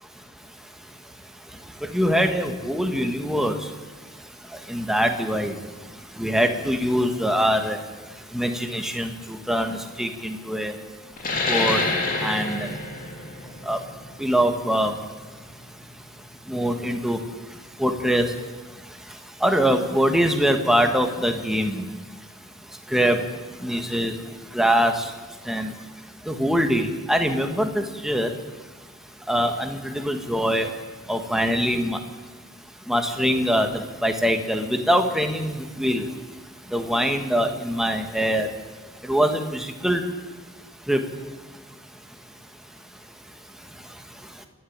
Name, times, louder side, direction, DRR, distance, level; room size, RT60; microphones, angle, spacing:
voice 1, 1.9-3.6 4.7-5.5 6.2-7.8 8.3-9.1 9.5-10.7 11.5-11.8 12.2-12.7 13.7-13.8 14.2-14.9 16.5-17.2 17.8-18.3 19.4-21.8 22.9-23.2 23.6-24.1 24.5-25.1 25.5-25.7 26.3-28.3 29.3-30.7 31.1-32.0 32.9-36.1 36.7-38.5 39.1-40.0 40.9-41.0, equal, ahead, 5 dB, 1.8 m, -23 dB
sound 1, 11.2-16.3, left 3 dB, 40° left, 2.8 m, -28 dB
28.5 x 11.5 x 8.9 m, 1.3 s
head